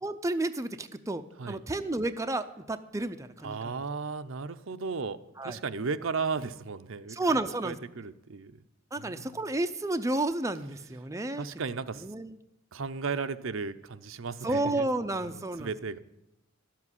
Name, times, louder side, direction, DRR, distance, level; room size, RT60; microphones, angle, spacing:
voice 1, 0.0-3.7 5.4-5.6 7.1-7.8 8.9-11.4 12.0-12.3 14.4-15.7, right 2 dB, 15° right, 8 dB, 0.5 m, -31 dB
voice 2, 3.4-8.6 9.0-9.4 11.4-12.1 12.7-14.9 15.2-16.0, right 4 dB, 70° right, 11 dB, 0.7 m, -35 dB
13.0 x 7.5 x 9.7 m, 0.89 s
head